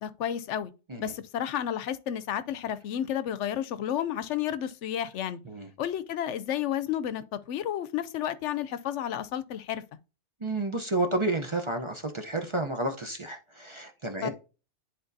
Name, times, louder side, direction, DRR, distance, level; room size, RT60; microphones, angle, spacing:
voice 1, 0.0-0.7 1.0-5.4 5.8-9.8 14.2-14.3, left 10 dB, 80° left, 0.9 m, -31 dB
voice 2, 10.4-14.3, right 2 dB, 30° right, 0.6 m, -31 dB
10.5 x 4.2 x 2.6 m
omnidirectional pair, 1.2 m